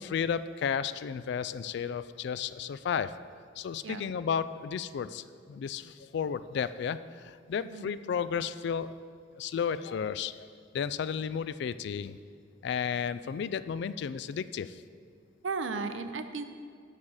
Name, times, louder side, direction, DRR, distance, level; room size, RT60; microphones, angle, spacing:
voice 1, 0.0-3.2 3.6-9.0 9.4-10.5 10.7-12.2 12.6-14.8, left 7 dB, 65° left, 14 dB, 0.3 m, -33 dB
voice 2, 15.4-16.4, right 4 dB, 75° right, 9 dB, 0.6 m, -35 dB
8.6 x 7.2 x 4.8 m, 2.2 s
head